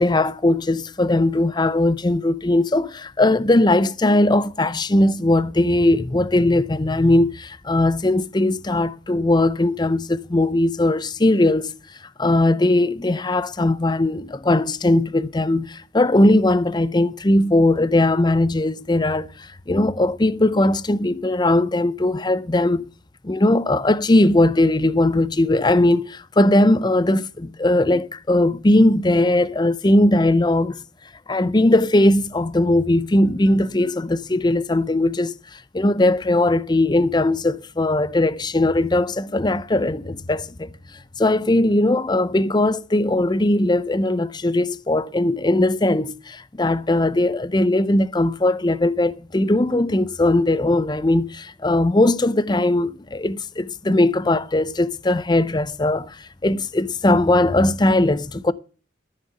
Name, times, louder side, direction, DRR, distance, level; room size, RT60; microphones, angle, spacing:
voice 1, 0.0-11.7 12.2-22.9 23.2-30.8 31.3-40.7 41.2-58.5, left 1 dB, 20° left, 0.6 m, -19 dB
13.5 x 6.7 x 7.8 m
head